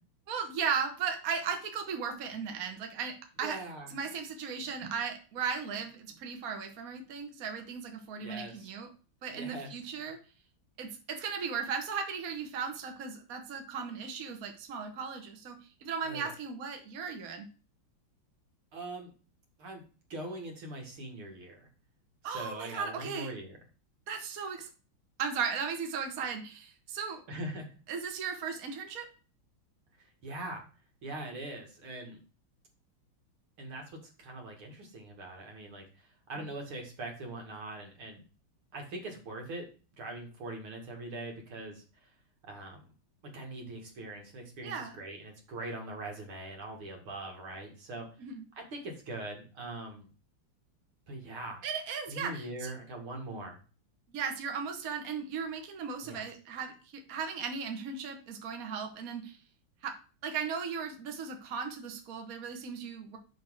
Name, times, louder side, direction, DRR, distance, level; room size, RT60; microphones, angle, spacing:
voice 1, 0.3-3.6 3.9-8.9 9.2-10.2 10.8-15.6 15.8-17.5 22.2-23.3 24.1-24.7 25.2-27.2 27.9-29.1 44.6-45.0 48.2-48.4 51.6-52.7 54.1-59.4 59.8-59.9 60.2-63.2, right 6 dB, 45° right, 5 dB, 1.6 m, -36 dB
voice 2, 3.4-4.0 8.2-8.7 9.3-9.7 16.0-16.3 18.7-19.1 19.6-19.8 20.1-21.7 22.2-23.6 27.3-27.8 30.0-30.7 31.0-32.2 33.6-38.2 38.7-39.7 40.0-42.1 42.4-42.8 43.3-48.1 48.5-50.1 51.1-51.7 52.1-53.6 56.0-56.3, right 2 dB, 80° right, 1 dB, 3.2 m, -42 dB
6.5 x 5.6 x 6.4 m, 0.35 s
omnidirectional pair, 2.3 m